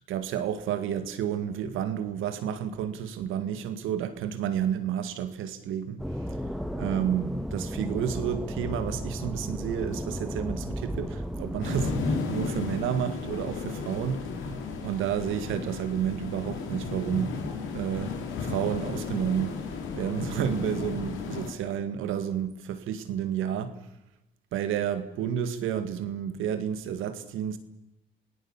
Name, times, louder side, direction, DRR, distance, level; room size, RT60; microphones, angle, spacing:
voice 1, 0.1-6.0 6.7-14.2 14.8-17.4 17.7-18.2 18.4-19.6 20.0-23.8 24.5-27.6, right 9 dB, 90° right, 2.0 m, -30 dB
sound 1, 6.0-12.2, equal, ahead, 1.8 m, -34 dB
sound 2, 11.6-21.5, left 4 dB, 85° left, 3.8 m, -34 dB
27.5 x 18.0 x 7.3 m
cardioid pair, 90°, 20 cm